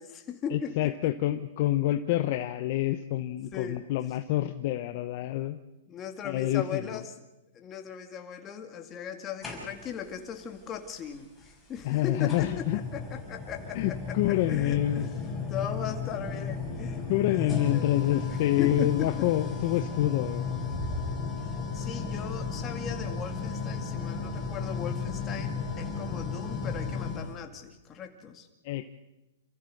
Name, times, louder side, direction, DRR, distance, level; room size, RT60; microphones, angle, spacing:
voice 1, 0.0-0.9 2.1-2.2 3.5-3.8 5.9-7.1 7.5-15.1 15.5-17.9 18.3-19.3 21.4-28.5, left 7 dB, 20° left, 5 dB, 2.2 m, -38 dB
voice 2, 0.5-5.6 6.2-7.0 11.8-12.8 13.7-15.1 17.1-20.5 28.6-28.9, left 14 dB, 45° left, 9 dB, 0.8 m, -27 dB
sound 1, 9.4-10.1 11.4-11.5 12.3-27.3, left 5 dB, 5° left, 6.0 m, -34 dB
28.0 x 14.5 x 6.6 m, 1.0 s
hypercardioid pair, 145°, 0 cm